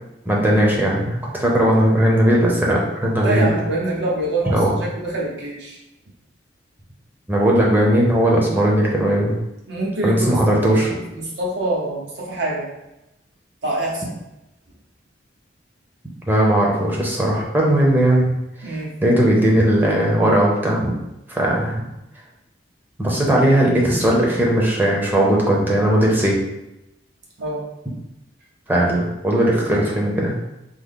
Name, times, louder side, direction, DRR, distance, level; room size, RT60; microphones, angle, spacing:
voice 1, 0.3-3.5 4.5-4.7 7.3-9.3 10.0-10.9 16.3-18.3 19.0-20.9 21.3-21.8 23.0-26.4 28.7-30.3, right 1 dB, 10° right, -3 dB, 0.7 m, -18 dB
voice 2, 3.2-5.8 9.7-12.7 13.6-14.2 18.6-18.9 27.4-27.7, right 2 dB, 65° right, -4 dB, 1.0 m, -25 dB
3.6 x 2.1 x 3.6 m, 0.90 s
head